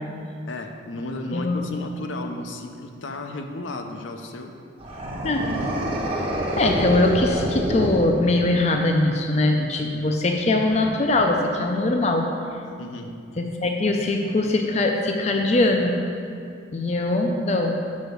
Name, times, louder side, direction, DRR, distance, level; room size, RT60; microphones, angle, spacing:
voice 1, 0.5-4.5 12.8-13.2, left 2 dB, 80° left, 4 dB, 0.6 m, -34 dB
voice 2, 1.3-1.7 5.2-5.5 6.6-12.3 13.4-16.0 16.7-17.8, left 2 dB, 35° left, 3 dB, 0.5 m, -21 dB
sound 1, 4.8-8.7, equal, 30° right, 0.9 m, -27 dB
6.3 x 4.8 x 6.8 m, 2.3 s
head